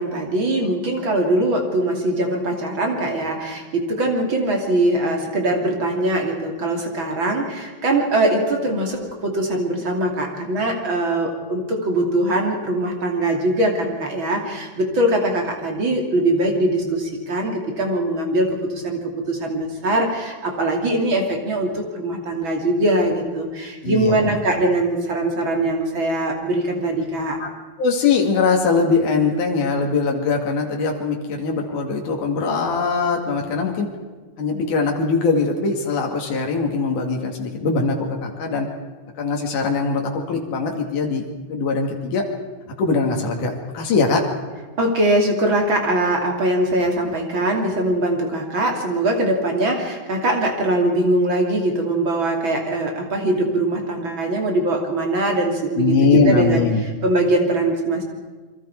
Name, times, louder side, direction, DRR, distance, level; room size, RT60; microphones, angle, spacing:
voice 1, 0.0-27.4 44.8-56.6 57.0-58.0, right 1 dB, 40° right, 1 dB, 3.4 m, -22 dB
voice 2, 23.8-24.4 27.4-27.5 27.8-33.9 34.4-38.7 39.2-41.2 41.5-42.2 42.7-44.2 55.8-56.8, left 4 dB, 80° left, 1 dB, 3.9 m, -21 dB
28.0 x 23.0 x 4.9 m, 1.4 s
omnidirectional pair, 3.5 m